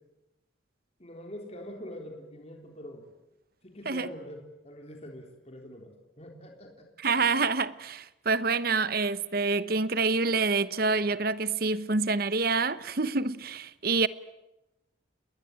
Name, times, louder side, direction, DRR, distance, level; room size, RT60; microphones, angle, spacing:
voice 1, 1.0-3.1 3.6-6.9, equal, 35° left, 3.7 m, -44 dB
voice 2, 7.0-14.1, right 4 dB, 50° right, 1.0 m, -27 dB
29.0 x 20.5 x 9.1 m
head